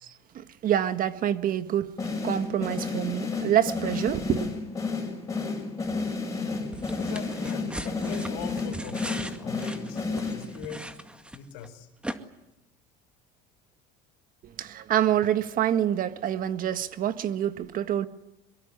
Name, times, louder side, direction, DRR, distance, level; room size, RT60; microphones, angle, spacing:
voice 1, 0.0-1.9 2.2-4.5 14.6-18.1, right 10 dB, 45° right, 1.7 m, -26 dB
sound 1, 2.0-10.8, left 3 dB, 15° left, 6.7 m, -31 dB
voice 2, 6.3-10.9 11.3-11.9, left 7 dB, 85° left, 4.3 m, -42 dB
sound 2, 6.7-11.7 12.0-12.2, right 1 dB, 5° right, 2.1 m, -39 dB
23.5 x 22.5 x 9.8 m
supercardioid pair, 115°, 19 cm